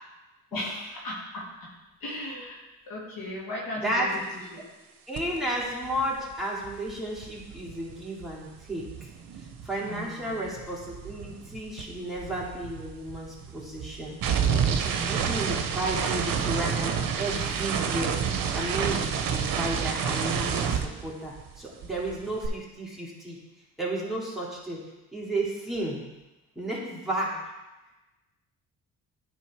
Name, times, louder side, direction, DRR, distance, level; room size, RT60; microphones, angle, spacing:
voice 1, 0.5-1.7 2.0-4.6 9.9-10.4, left 1 dB, 65° left, -4 dB, 2.2 m, -37 dB
voice 2, 3.8-4.1 5.1-9.1 9.6-23.4 23.8-24.8 25.1-26.0 26.6-27.4, right 1 dB, ahead, -5 dB, 2.5 m, -33 dB
sound 1, 5.2-5.4 5.6-10.0 10.3-21.6 21.8-22.5, right 7 dB, 65° right, 0.8 m, -29 dB
9.3 x 3.7 x 4.8 m, 1.1 s
supercardioid pair, 70°, 37 cm